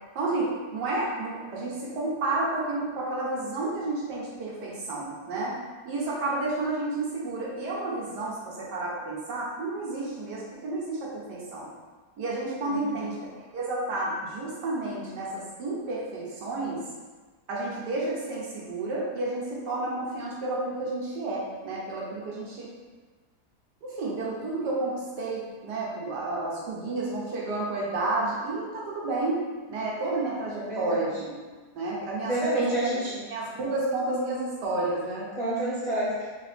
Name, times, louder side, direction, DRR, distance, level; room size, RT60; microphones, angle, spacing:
voice 1, 0.1-5.6 5.8-11.7 12.2-16.8 17.5-22.7 23.8-29.4 29.7-31.4 31.7-32.6 33.3-35.3, right 2 dB, 80° right, -5 dB, 1.5 m, -31 dB
voice 2, 12.7-13.0 30.6-31.0 32.2-33.2 35.3-36.3, right 1 dB, 30° left, -10 dB, 0.6 m, -29 dB
3.9 x 2.9 x 3.2 m, 1.4 s
omnidirectional pair, 1.8 m